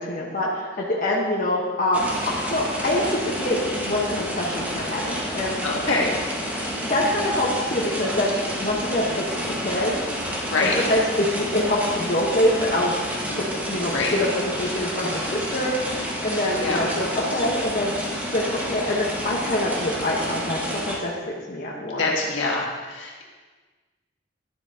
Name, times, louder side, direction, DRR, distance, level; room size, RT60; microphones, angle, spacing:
voice 1, 0.0-5.6 6.9-9.2 9.6-10.0 10.6-12.9 13.3-15.9 16.2-17.9 18.3-18.4 18.7-22.1, left 1 dB, 45° left, -4 dB, 1.0 m, -25 dB
sound 1, 1.9-21.0, equal, 10° right, 1.4 m, -29 dB
voice 2, 5.6-6.1 10.4-10.8 13.3-13.4 13.9-14.1 16.6-16.9 22.0-23.3, left 3 dB, 80° left, -2 dB, 1.8 m, -25 dB
11.5 x 7.8 x 2.8 m, 1.4 s
head